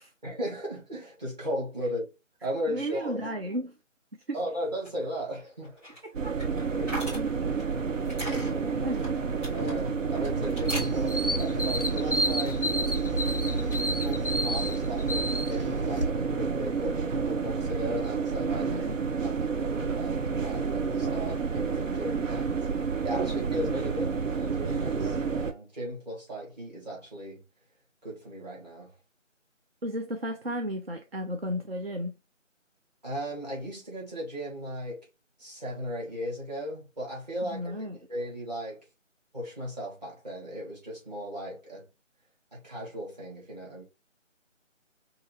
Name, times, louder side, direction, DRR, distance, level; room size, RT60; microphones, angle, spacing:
voice 1, 0.2-2.1 2.4-3.3 4.3-5.7 6.7-7.1 8.3-8.8 9.5-12.7 14.0-18.8 19.2-27.5 28.0-28.9 33.0-35.1 35.4-38.8 39.3-41.9 42.5-43.8, equal, 35° right, 2.2 m, -36 dB
voice 2, 2.7-3.8 4.3-4.4 6.0-6.4 6.9-7.7 8.6-9.1 18.6-19.0 29.8-32.2 37.4-38.0, equal, 50° right, 0.6 m, -34 dB
sound 1, 4.5-13.0 13.3-14.1, equal, 10° right, 2.1 m, -43 dB
sound 2, 6.1-25.5, right 5 dB, 80° right, 0.7 m, -29 dB
sound 3, 10.7-16.1, equal, 45° left, 0.4 m, -31 dB
5.6 x 2.8 x 2.3 m
figure-of-eight pair, 180°, 38 cm